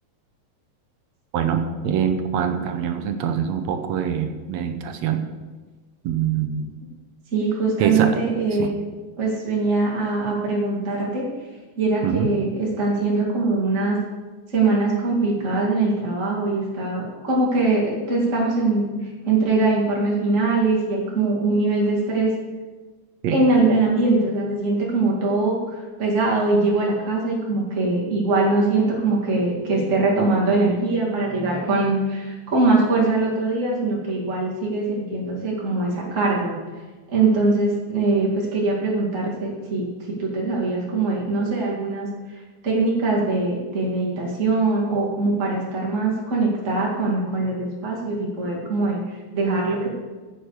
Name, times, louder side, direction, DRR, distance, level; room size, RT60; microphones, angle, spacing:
voice 1, 1.3-5.2 6.0-6.7 7.8-8.2 8.6-8.7 12.0-12.3 23.2-23.4, right 8 dB, 75° right, 7 dB, 1.9 m, -24 dB
voice 2, 7.3-8.8 9.2-11.2 11.8-14.0 14.5-22.3 23.3-36.5 37.1-49.9, right 3 dB, 30° right, -5 dB, 2.2 m, -22 dB
15.5 x 6.8 x 4.7 m, 1.3 s
omnidirectional pair, 3.3 m